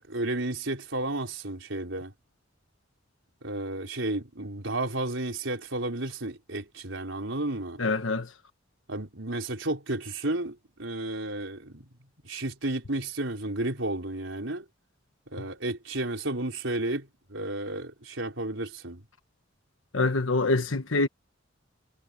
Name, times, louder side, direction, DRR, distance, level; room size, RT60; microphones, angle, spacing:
voice 1, 0.0-2.1 3.4-7.8 8.9-11.9 12.2-14.6 15.3-19.0, right 2 dB, 70° right, 5.0 m, -32 dB
voice 2, 7.8-8.3 19.9-21.1, left 3 dB, 85° left, 1.3 m, -25 dB
head